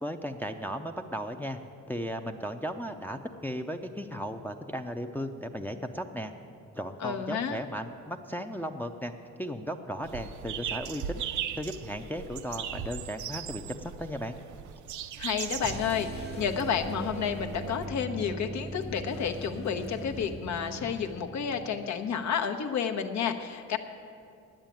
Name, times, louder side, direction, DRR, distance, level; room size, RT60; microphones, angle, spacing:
voice 1, 0.0-1.6 1.9-6.3 6.8-9.1 9.4-11.2 11.6-14.4, equal, 5° left, 4 dB, 0.5 m, -36 dB
voice 2, 7.0-7.6 15.2-23.8, left 7 dB, 65° left, 7 dB, 1.0 m, -31 dB
sound 1, 10.0-17.9, right 9 dB, 75° right, 0.6 m, -38 dB
sound 2, 15.5-21.2, left 2 dB, 50° left, 1.3 m, -49 dB
sound 3, 15.6-22.0, right 3 dB, 35° right, 0.6 m, -41 dB
9.4 x 8.9 x 9.1 m, 2.5 s
cardioid pair, 90°, 30 cm